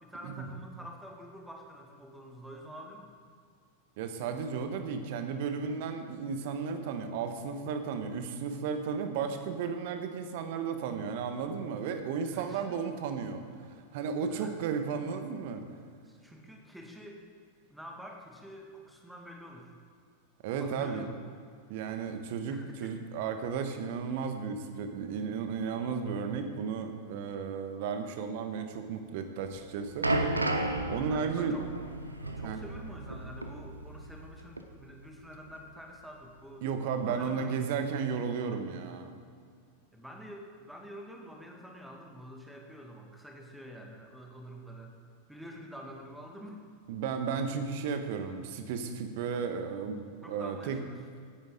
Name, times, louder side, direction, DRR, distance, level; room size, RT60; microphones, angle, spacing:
voice 1, 0.0-3.1 12.2-12.8 14.3-14.5 16.0-17.2 17.7-19.7 20.6-21.2 22.5-23.0 31.0-31.7 32.2-36.7 36.9-37.8 39.9-45.0 45.3-46.6 50.2-51.0, equal, ahead, 1 dB, 1.9 m, -47 dB
voice 2, 4.0-13.4 13.9-15.6 20.4-21.1 21.7-30.1 30.9-31.6 32.4-32.6 36.6-39.1 46.9-50.8, right 6 dB, 50° right, 7 dB, 1.2 m, -34 dB
sound 1, 29.4-34.3 34.6-34.7 35.5-35.6, right 2 dB, 80° right, 0.9 m, -33 dB
17.5 x 10.5 x 3.8 m, 2.2 s
figure-of-eight pair, 90°, 0 cm